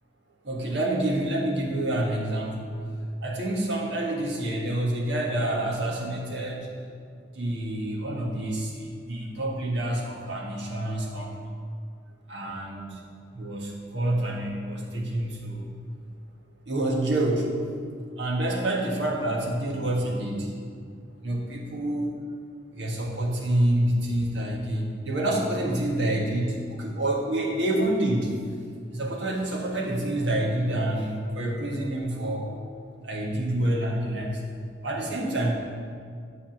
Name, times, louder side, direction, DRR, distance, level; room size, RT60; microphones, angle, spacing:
voice 1, 0.4-6.7 7.3-11.3 12.3-13.0 13.3-15.6 16.7-17.5 18.2-20.5 21.2-22.1 22.7-28.3 28.9-32.5 33.0-34.4 34.8-35.6, right 1 dB, 70° right, -2 dB, 1.7 m, -27 dB
10.5 x 4.1 x 7.4 m, 2.1 s
head